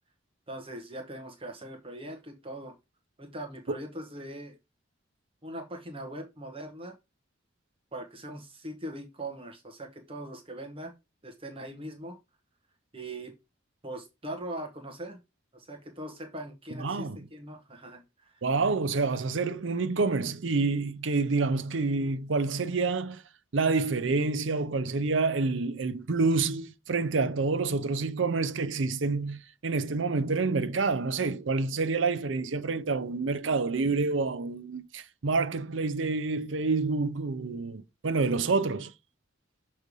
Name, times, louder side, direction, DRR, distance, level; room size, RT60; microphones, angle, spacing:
voice 1, 0.5-2.8 3.2-4.6 5.4-6.9 7.9-10.9 11.2-12.2 12.9-13.3 13.8-15.2 15.5-18.4, right 1 dB, 30° right, 1.1 m, -41 dB
voice 2, 16.8-17.2 18.4-23.2 23.5-38.9, right 3 dB, 75° right, 0.6 m, -28 dB
6.6 x 3.2 x 5.3 m
head